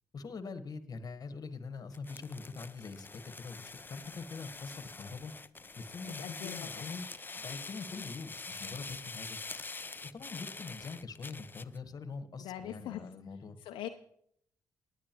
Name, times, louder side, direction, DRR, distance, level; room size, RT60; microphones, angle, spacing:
voice 1, 0.1-3.1 3.4-5.3 5.8-7.1 7.3-9.4 10.1-13.6, left 4 dB, 50° left, 11 dB, 1.3 m, -43 dB
sound 1, 1.9-11.8, left 3 dB, 25° left, 0.5 m, -45 dB
voice 2, 6.1-7.0 12.4-13.0 13.6-13.9, left 12 dB, 75° left, 5 dB, 0.6 m, -42 dB
19.0 x 9.8 x 3.0 m, 0.70 s
hypercardioid pair, 45°, 8 cm